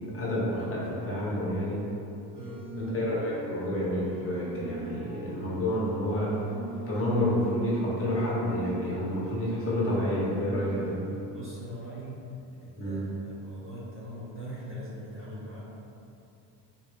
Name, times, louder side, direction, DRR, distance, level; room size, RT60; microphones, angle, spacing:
voice 1, 0.1-1.8 2.8-6.3 6.9-11.0 12.8-13.0, left 1 dB, 30° left, -6 dB, 1.0 m, -29 dB
sound 1, 2.3-11.2, right 3 dB, 65° right, 1.2 m, -42 dB
voice 2, 11.3-12.2 12.6-15.6, equal, 30° right, -7 dB, 0.5 m, -41 dB
3.8 x 2.6 x 3.4 m, 2.7 s
cardioid pair, 120°, 46 cm